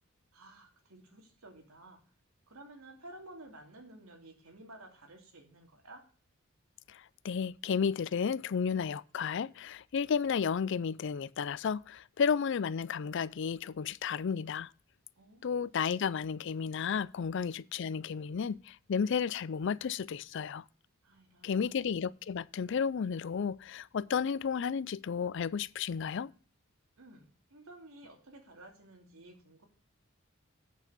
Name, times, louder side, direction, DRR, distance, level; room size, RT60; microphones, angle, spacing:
voice 1, 0.3-2.0 2.5-6.0 15.2-15.7 17.1-17.2 21.0-21.7 27.0-29.6, right 1 dB, 85° right, 2.7 m, -53 dB
voice 2, 6.9-14.7 15.4-20.6 21.4-26.3, left 6 dB, 60° left, 0.4 m, -32 dB
8.3 x 7.0 x 6.7 m
head